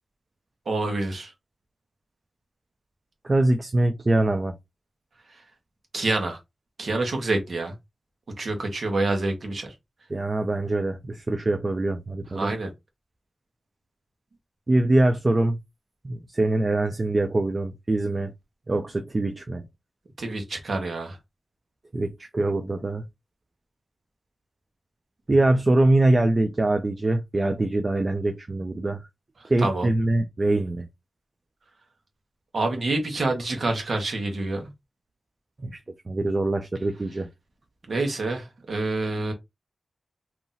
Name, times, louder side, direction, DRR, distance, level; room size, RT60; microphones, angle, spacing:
voice 1, 0.7-1.3 5.9-6.4 6.8-7.7 8.4-9.7 12.3-12.7 20.2-21.2 29.6-29.9 32.5-34.7 37.9-39.3, right 2 dB, 65° right, 1.3 m, -27 dB
voice 2, 3.2-4.5 10.1-12.5 14.7-15.6 16.0-18.3 18.7-19.6 21.9-23.0 25.3-29.0 29.4-30.9 35.6-35.8 36.1-37.3, right 2 dB, 35° right, 0.5 m, -23 dB
2.9 x 2.7 x 3.9 m
wide cardioid pair, 120°, 0 cm